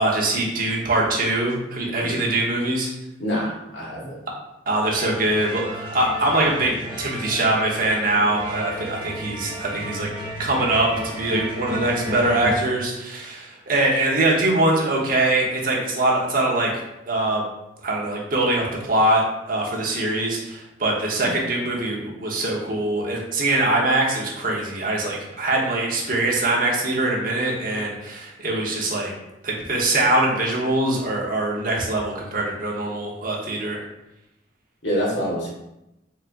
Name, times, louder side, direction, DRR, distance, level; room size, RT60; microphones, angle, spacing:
voice 1, 0.0-2.9 4.7-10.1 10.4-16.7 17.1-17.5 17.8-29.1 29.4-33.8, right 2 dB, 50° right, -3 dB, 1.0 m, -23 dB
voice 2, 3.2-4.2 21.1-21.4 34.8-35.5, equal, 80° left, -5 dB, 1.4 m, -26 dB
sound 1, 4.9-12.5, equal, 30° right, 0.9 m, -33 dB
4.3 x 3.5 x 2.5 m, 0.91 s
head